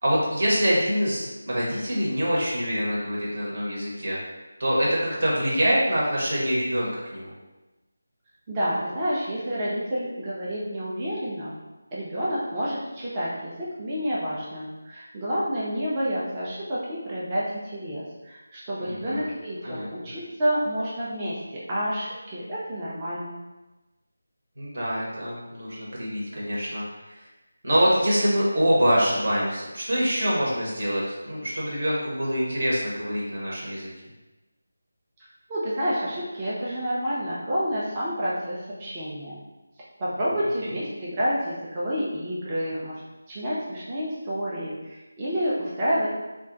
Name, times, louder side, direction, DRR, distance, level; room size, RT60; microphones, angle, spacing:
voice 1, 0.0-4.2 4.6-7.3 18.8-19.3 19.6-19.9 24.6-27.2 27.6-33.9, equal, 55° right, -6 dB, 1.2 m, -25 dB
voice 2, 8.5-11.5 11.9-23.4 35.5-39.4 40.0-43.0 43.3-46.1, equal, 20° right, -8 dB, 0.6 m, -29 dB
2.4 x 2.3 x 3.9 m, 1.1 s
figure-of-eight pair, 165°, 0 cm